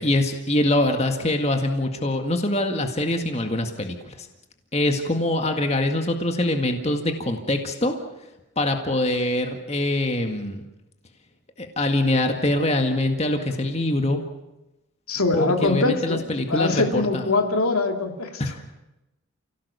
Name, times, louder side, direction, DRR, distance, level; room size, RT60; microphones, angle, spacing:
voice 1, 0.0-4.3 4.7-7.9 8.6-10.6 11.6-14.2 15.3-17.2 18.4-18.6, left 1 dB, 30° left, 4 dB, 1.9 m, -24 dB
voice 2, 15.1-16.2 16.5-18.4, left 3 dB, 85° left, 4 dB, 2.7 m, -23 dB
30.0 x 17.0 x 6.9 m, 0.96 s
head